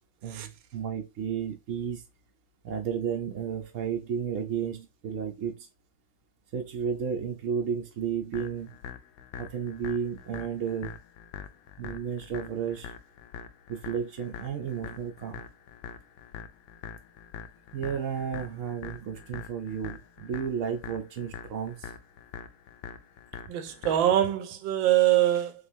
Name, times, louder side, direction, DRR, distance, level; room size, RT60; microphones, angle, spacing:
voice 1, 0.2-2.0 2.6-5.7 6.5-8.7 9.4-10.9 11.8-12.9 13.7-15.4 17.7-21.9, right 7 dB, 65° right, 0.8 m, -33 dB
sound 1, 8.3-24.3, left 8 dB, 85° left, 1.4 m, -44 dB
voice 2, 23.5-25.5, right 12 dB, 85° right, 1.4 m, -23 dB
6.5 x 2.4 x 2.6 m
omnidirectional pair, 2.1 m